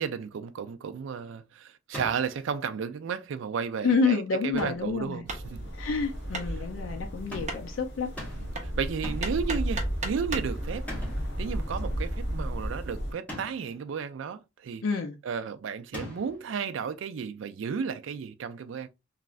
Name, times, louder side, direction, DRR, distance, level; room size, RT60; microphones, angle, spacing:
voice 1, 0.0-5.7 8.4-10.9 11.4-14.8 15.2-18.9, right 6 dB, 70° right, 0.3 m, -33 dB
sound 1, 1.9-2.4 4.6-5.0 7.3-7.7 8.2-8.6 9.0-9.4 10.9-11.4 13.3-13.7 15.9-16.4, left 1 dB, 10° left, 0.9 m, -41 dB
voice 2, 3.8-5.2 5.7-8.1 14.8-15.1, left 4 dB, 80° left, 0.5 m, -28 dB
sound 2, 5.2-13.1, equal, 65° left, 1.2 m, -34 dB
Hammer, 5.3-10.6, right 3 dB, 40° right, 0.7 m, -39 dB
3.1 x 2.4 x 2.3 m
head